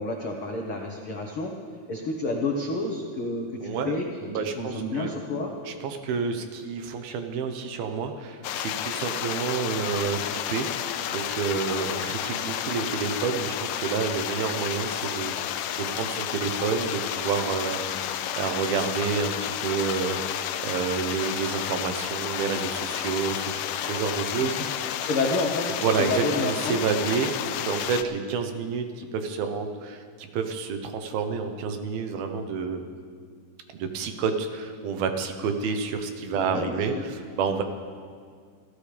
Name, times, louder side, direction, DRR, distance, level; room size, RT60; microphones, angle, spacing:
voice 1, 0.0-1.5 1.9-4.3 4.6-5.5 24.4-26.8 36.3-37.0, left 2 dB, 70° left, 0 dB, 1.3 m, -30 dB
voice 2, 3.6-4.0 4.2-5.1 5.7-24.8 25.8-32.8 33.7-37.6, right 5 dB, 75° right, 6 dB, 2.8 m, -29 dB
sound 1, 8.4-28.0, left 11 dB, 85° left, 1.9 m, -31 dB
28.0 x 14.5 x 3.5 m, 2.1 s
omnidirectional pair, 4.4 m